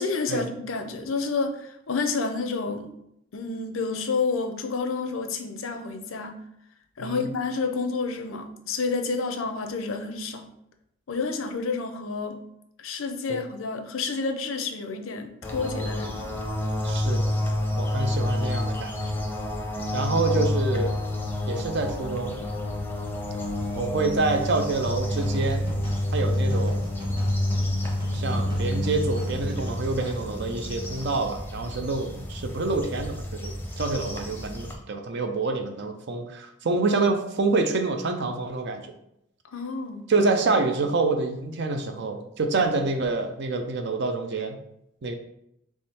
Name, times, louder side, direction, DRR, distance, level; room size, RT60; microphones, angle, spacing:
voice 1, 0.0-2.9 3.3-6.4 7.0-10.5 11.1-12.4 12.8-16.3 39.5-40.1, left 4 dB, 75° left, 6 dB, 0.6 m, -29 dB
sound 1, 15.4-34.7, left 1 dB, 10° left, 0.6 m, -28 dB
voice 2, 16.8-17.4 17.8-18.9 19.9-20.9 21.5-22.4 23.7-25.7 26.1-26.8 28.1-38.8 40.1-44.6 45.0-45.1, right 3 dB, 60° right, 6 dB, 0.6 m, -27 dB
sound 2, 24.8-30.2, equal, 20° right, 1.1 m, -40 dB
3.6 x 3.1 x 4.2 m, 0.78 s
head